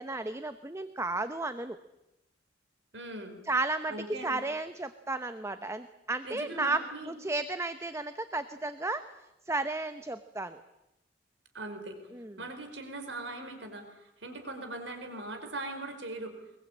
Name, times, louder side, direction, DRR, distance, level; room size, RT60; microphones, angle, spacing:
voice 1, 0.0-1.8 3.4-3.9 4.2-9.0 9.5-10.6 12.1-12.4, right 2 dB, 15° right, 10 dB, 0.9 m, -33 dB
voice 2, 2.9-3.4 3.9-4.4 6.2-7.1 11.5-12.0 12.4-16.3, right 2 dB, 80° right, 5 dB, 4.8 m, -40 dB
23.5 x 22.0 x 8.8 m, 0.92 s
head